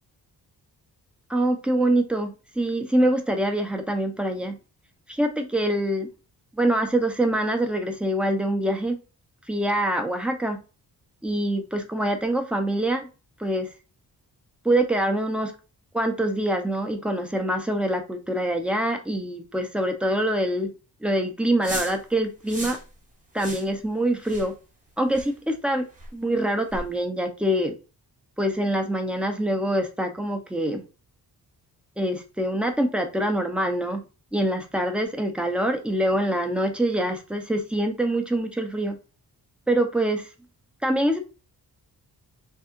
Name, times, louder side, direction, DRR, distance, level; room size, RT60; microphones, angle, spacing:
voice 1, 1.3-4.6 5.1-6.1 6.5-9.0 9.5-10.6 11.2-13.1 13.4-13.7 14.6-15.5 15.9-20.7 21.0-22.8 23.3-24.5 25.0-25.8 26.1-27.7 28.4-30.8 32.0-34.0 34.3-39.0 39.7-40.3 40.8-41.2, right 1 dB, 5° right, 4 dB, 0.6 m, -25 dB
sound 1, 21.6-22.0 22.5-22.8 23.4-23.7 24.2-24.5 25.1-25.3 26.0-26.1 26.7-26.9, right 1 dB, 20° right, 1.0 m, -35 dB
3.4 x 2.7 x 3.6 m, 0.32 s
wide cardioid pair, 165°, 41 cm